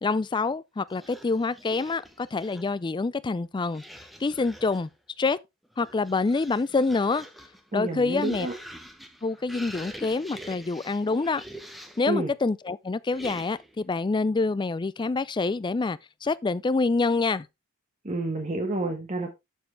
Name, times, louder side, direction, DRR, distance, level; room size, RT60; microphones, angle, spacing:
voice 1, 0.0-3.8 4.2-4.9 5.2-5.4 5.8-7.3 7.7-8.5 9.2-11.4 12.0-17.5, left 3 dB, 20° left, 0.4 m, -26 dB
sound 1, 0.9-2.8 3.7-4.9 5.6-12.1 13.1-13.8, equal, ahead, 1.1 m, -45 dB
voice 2, 7.7-8.5 12.1-12.3 18.0-19.3, right 2 dB, 35° right, 1.3 m, -29 dB
7.4 x 7.1 x 3.2 m
head